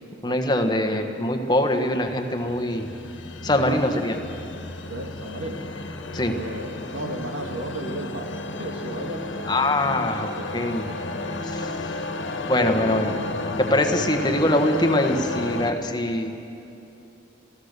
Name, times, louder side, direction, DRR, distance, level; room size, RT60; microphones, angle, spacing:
voice 1, 0.2-2.9 3.4-4.2 6.1-6.4 9.5-10.3 10.5-10.9 11.4-11.9 12.5-13.1 13.6-16.3, left 1 dB, 20° left, 4 dB, 1.3 m, -23 dB
sound 1, 1.6-15.7, left 2 dB, 80° left, 1.5 m, -33 dB
voice 2, 3.4-3.8 4.9-5.6 6.3-8.3 8.6-9.5 10.4-10.9 12.5-12.9 14.0-14.1, right 1 dB, 80° right, 3 dB, 2.1 m, -34 dB
28.5 x 15.5 x 6.7 m, 2.8 s
head